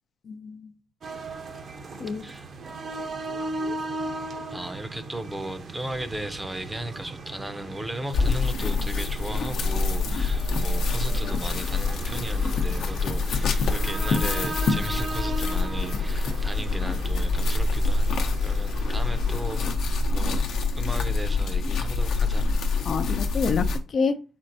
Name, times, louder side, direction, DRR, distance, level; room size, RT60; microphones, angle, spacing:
voice 1, 0.3-0.7 2.0-2.2 22.9-24.2, left 5 dB, 50° left, 0.4 m, -27 dB
sound 1, 1.0-19.8, right 2 dB, 50° right, 0.8 m, -37 dB
voice 2, 4.5-20.4 20.7-22.5, right 1 dB, 15° right, 0.6 m, -36 dB
sound 2, 8.1-23.8, left 3 dB, 75° left, 0.8 m, -25 dB
4.4 x 4.4 x 2.7 m
cardioid pair, 90°, 0 cm